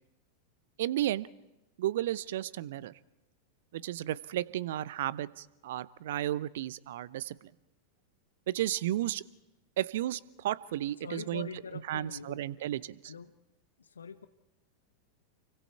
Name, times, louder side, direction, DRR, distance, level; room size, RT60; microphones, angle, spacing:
voice 1, 0.8-1.3 1.8-2.9 3.7-7.5 8.5-9.2 9.8-11.5 11.9-13.1, right 13 dB, 55° right, 20 dB, 0.7 m, -33 dB
voice 2, 11.0-12.4 13.0-13.3 13.8-14.3, left 6 dB, 70° left, 12 dB, 0.9 m, -43 dB
29.0 x 24.0 x 4.6 m, 0.97 s
figure-of-eight pair, 90°, 0 cm